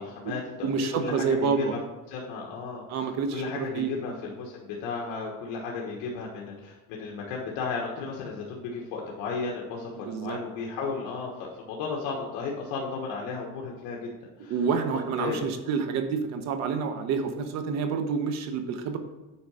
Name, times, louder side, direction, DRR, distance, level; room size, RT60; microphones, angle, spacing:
voice 1, 0.0-1.8 2.1-14.6 15.2-15.4, left 4 dB, 70° left, -2 dB, 1.4 m, -34 dB
voice 2, 0.6-1.7 2.9-4.0 10.0-10.4 14.5-19.0, right 6 dB, 55° right, 7 dB, 1.0 m, -28 dB
8.7 x 4.8 x 4.9 m, 1.1 s
cardioid pair, 140°, 32 cm